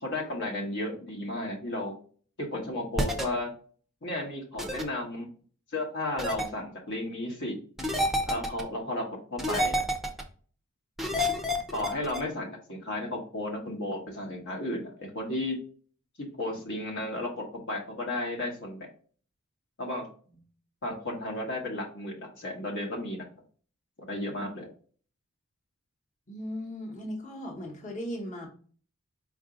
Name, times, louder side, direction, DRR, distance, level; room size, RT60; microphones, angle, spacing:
voice 1, 0.0-2.0 2.4-3.5 4.0-5.3 5.7-7.6 8.2-9.8 11.5-15.6 16.4-18.8 19.8-20.1 20.8-23.2 24.1-24.7, left 1 dB, 60° left, 0 dB, 1.1 m, -33 dB
sound 1, 3.0-3.2 4.6-4.8 6.2-6.5 7.8-8.6 9.4-10.2 11.0-12.2, left 1 dB, ahead, 0.6 m, -28 dB
voice 2, 26.3-28.5, equal, 35° left, -2 dB, 1.1 m, -37 dB
4.7 x 2.6 x 3.7 m, 0.43 s
head